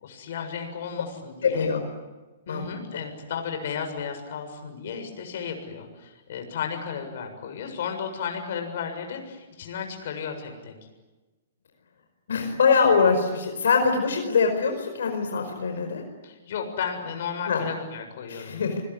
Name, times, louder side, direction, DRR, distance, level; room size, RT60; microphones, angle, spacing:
voice 1, 0.0-1.7 2.5-10.7 16.2-18.6, left 6 dB, 60° left, 5 dB, 7.0 m, -34 dB
voice 2, 1.4-1.8 2.5-2.7 12.3-16.0 17.5-17.6 18.3-18.8, left 5 dB, 85° left, 4 dB, 5.2 m, -23 dB
27.0 x 21.5 x 9.8 m, 1.2 s
hypercardioid pair, 155°, 0 cm